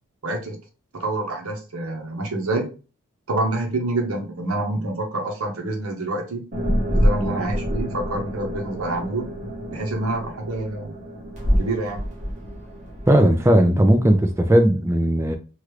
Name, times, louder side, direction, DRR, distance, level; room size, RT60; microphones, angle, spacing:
voice 1, 0.2-0.6 0.9-2.7 3.3-6.5 6.9-9.3 9.7-10.9 11.6-12.0, right 2 dB, 70° right, 0.9 m, -27 dB
sound 1, 6.5-14.5, equal, 30° right, 0.8 m, -27 dB
voice 2, 13.1-15.4, right 1 dB, 10° right, 0.4 m, -17 dB
3.1 x 2.4 x 3.1 m
head